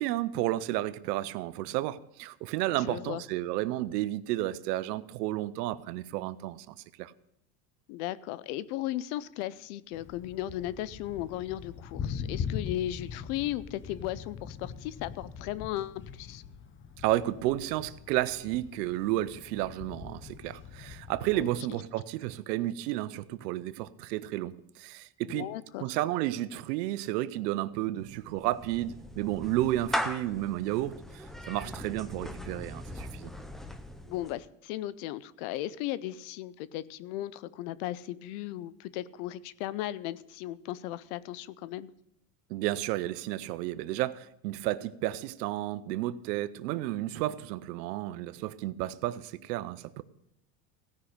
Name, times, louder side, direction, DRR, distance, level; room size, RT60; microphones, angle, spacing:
voice 1, 0.0-7.1 17.0-25.5 25.8-33.3 42.5-50.0, right 15 dB, 80° right, 16 dB, 0.8 m, -32 dB
voice 2, 2.8-3.2 7.9-16.4 21.3-21.5 25.2-25.8 34.1-41.9, left 14 dB, 65° left, 18 dB, 0.7 m, -36 dB
Thunder, 9.9-21.6, left 7 dB, 25° left, 1.0 m, -41 dB
Clapping / Meow, 28.0-34.5, equal, ahead, 0.5 m, -39 dB
16.5 x 5.8 x 6.5 m, 0.79 s
supercardioid pair, 125°, 48 cm